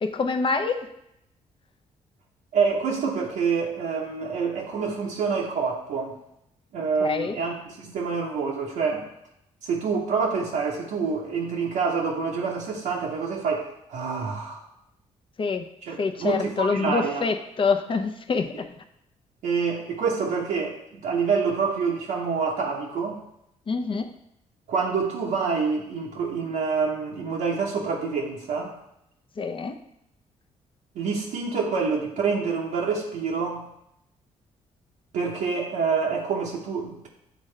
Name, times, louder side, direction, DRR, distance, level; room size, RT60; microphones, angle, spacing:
voice 1, 0.0-0.8 7.0-7.4 15.4-15.7 16.0-18.7 23.7-24.2 29.4-29.8, left 4 dB, 40° left, 7 dB, 0.7 m, -26 dB
voice 2, 2.5-6.2 6.7-9.1 9.6-14.6 15.8-17.2 19.4-20.8 21.0-23.2 24.7-28.8 30.9-33.7 35.1-37.1, right 5 dB, 85° right, -3 dB, 0.9 m, -27 dB
9.0 x 3.7 x 3.3 m, 0.80 s
cardioid pair, 75°, 13 cm